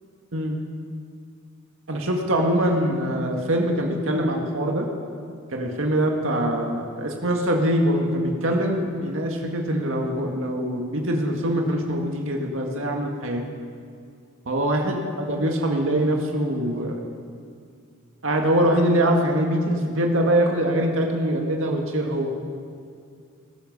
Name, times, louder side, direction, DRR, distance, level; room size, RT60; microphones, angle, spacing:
voice 1, 1.9-4.9 5.5-13.4 14.5-17.0 18.2-22.3, right 1 dB, 75° right, 2 dB, 1.9 m, -23 dB
20.5 x 12.5 x 5.5 m, 2.3 s
head